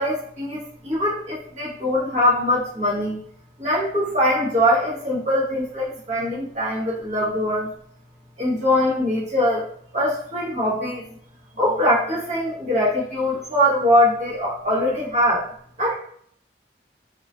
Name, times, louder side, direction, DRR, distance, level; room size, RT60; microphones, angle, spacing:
voice 1, 0.0-3.2 3.6-7.7 8.4-9.7 9.9-11.0 11.5-15.4 15.8-15.9, left 1 dB, 40° right, -7 dB, 0.9 m, -22 dB
2.3 x 2.2 x 2.4 m, 0.63 s
head